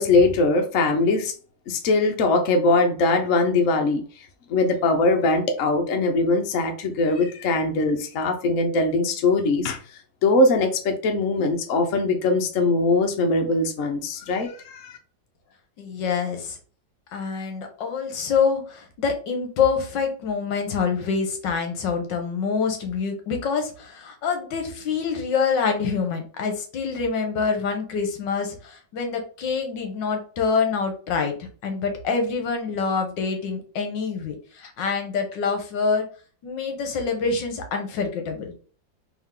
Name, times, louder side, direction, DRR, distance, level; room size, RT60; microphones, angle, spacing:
voice 1, 0.0-1.3 1.7-9.8 10.2-15.0, left 3 dB, 55° left, 4 dB, 0.9 m, -21 dB
voice 2, 15.8-16.6 17.1-36.1 36.4-38.5, left 5 dB, 75° left, 4 dB, 1.5 m, -26 dB
3.6 x 3.0 x 3.7 m, 0.40 s
omnidirectional pair, 2.1 m